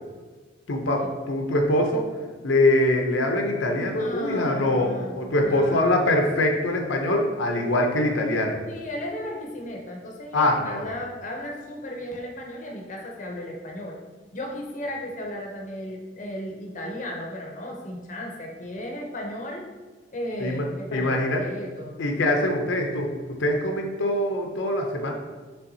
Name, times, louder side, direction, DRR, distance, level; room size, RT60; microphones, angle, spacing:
voice 1, 0.7-2.1 2.4-8.6 10.3-10.9 20.4-21.4 22.0-25.1, left 1 dB, 80° left, 2 dB, 0.6 m, -23 dB
voice 2, 3.8-6.0 8.7-14.0 14.3-19.7 20.1-21.9, left 1 dB, 40° left, 0 dB, 0.6 m, -35 dB
5.6 x 3.4 x 2.7 m, 1.4 s
head